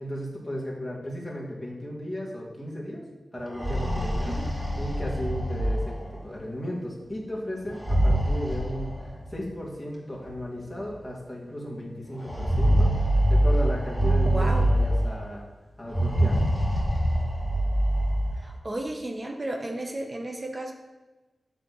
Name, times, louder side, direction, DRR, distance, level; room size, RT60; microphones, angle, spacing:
voice 1, 0.0-3.0 3.3-4.4 4.8-15.4 15.8-16.4, equal, 20° left, -3 dB, 2.2 m, -35 dB
sound 1, 3.4-6.3 7.6-9.3 10.3-10.4 10.8-10.9 12.2-15.3 15.9-18.5, right 1 dB, 5° right, 2.3 m, -24 dB
voice 2, 14.2-14.7 18.4-20.7, right 1 dB, 35° right, 3 dB, 1.0 m, -33 dB
7.8 x 3.4 x 6.1 m, 1.2 s
cardioid pair, 55°, 0 cm